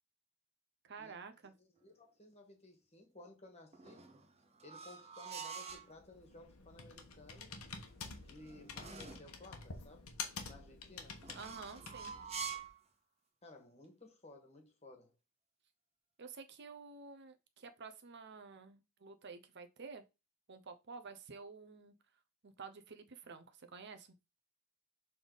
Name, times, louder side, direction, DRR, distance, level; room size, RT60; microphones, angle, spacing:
voice 1, 0.8-1.5 11.3-12.1 16.2-20.1 20.5-21.9 22.4-24.1, right 5 dB, 50° right, 0.7 m, -51 dB
voice 2, 1.4-4.1 4.6-7.6 8.2-10.1 10.4-11.2 13.4-15.2, left 2 dB, 30° left, 1.6 m, -57 dB
sound 1, 3.7-5.9 7.9-9.3 11.2-12.8, right 6 dB, 30° right, 1.0 m, -47 dB
Computer keyboard, 5.7-12.7, left 5 dB, 90° left, 1.2 m, -49 dB
6.7 x 3.6 x 4.0 m
head